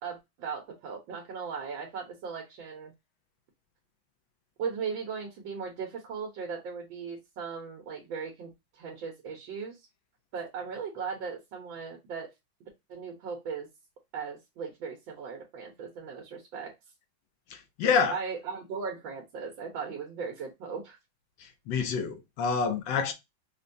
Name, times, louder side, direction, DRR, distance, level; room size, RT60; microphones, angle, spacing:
voice 1, 0.0-2.9 4.6-9.8 10.3-12.3 12.9-13.7 14.1-16.7 17.8-21.0, right 6 dB, 80° right, 1.7 m, -38 dB
voice 2, 17.5-18.2 21.4-23.1, left 5 dB, 75° left, 1.4 m, -28 dB
5.1 x 2.2 x 2.6 m
omnidirectional pair, 2.1 m